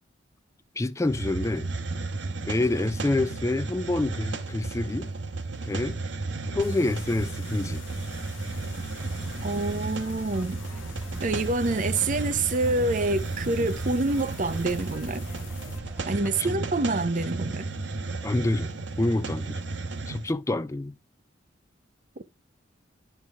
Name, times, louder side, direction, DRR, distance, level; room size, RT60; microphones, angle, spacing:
voice 1, 0.8-1.7 2.5-5.1 5.7-6.0 6.5-7.8 16.4-16.5 18.2-18.7 19.0-19.6 20.1-20.9, left 2 dB, 15° left, 0.3 m, -27 dB
Hiss, 1.0-20.3, right 3 dB, 65° right, 1.1 m, -33 dB
sound 1, 6.6-15.8, left 5 dB, 80° left, 0.8 m, -46 dB
sound 2, 9.0-16.5, equal, 5° right, 1.0 m, -47 dB
voice 2, 9.4-10.6 11.2-15.2 16.1-17.7, right 2 dB, 40° right, 0.6 m, -27 dB
11.0 x 4.6 x 3.3 m
head